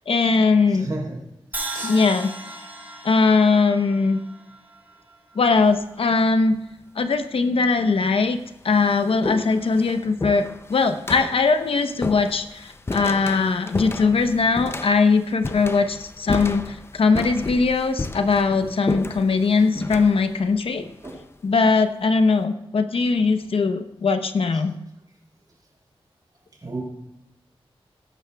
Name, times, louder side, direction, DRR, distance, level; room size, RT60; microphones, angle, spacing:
voice 1, 0.1-0.9 1.8-2.3 3.0-4.2 5.4-6.6 7.0-8.4 8.6-20.8 21.4-24.7, left 4 dB, 70° left, 8 dB, 0.8 m, -20 dB
voice 2, 0.7-1.2 1.7-1.9 21.0-21.2 26.6-26.8, right 2 dB, 40° right, 0 dB, 3.8 m, -32 dB
Crash cymbal, 1.5-5.6, right 2 dB, 20° right, 5.2 m, -36 dB
sound 1, 5.4-5.9 6.8-6.9 7.8-7.9 8.2-21.8, left 2 dB, 25° left, 0.5 m, -33 dB
20.5 x 11.0 x 2.3 m, 0.89 s
wide cardioid pair, 130°, 10 cm